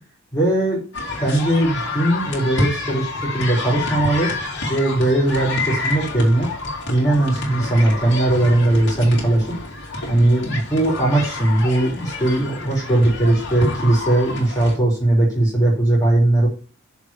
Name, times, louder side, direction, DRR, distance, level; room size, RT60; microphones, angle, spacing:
voice 1, 0.3-0.8 1.2-4.3 4.7-6.5 6.9-9.6 10.1-16.5, right 1 dB, 15° left, -5 dB, 3.2 m, -19 dB
sound 1, 0.9-14.8, left 2 dB, 55° left, 2.6 m, -28 dB
6.9 x 4.8 x 6.9 m, 0.37 s
head